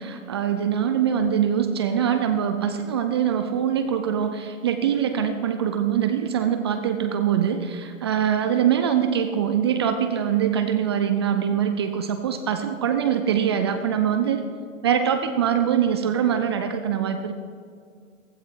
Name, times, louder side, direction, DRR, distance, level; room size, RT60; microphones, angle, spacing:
voice 1, 0.0-14.4 14.8-17.3, right 8 dB, 20° right, 8 dB, 0.4 m, -23 dB
15.5 x 15.5 x 4.5 m, 2.2 s
figure-of-eight pair, 125°, 41 cm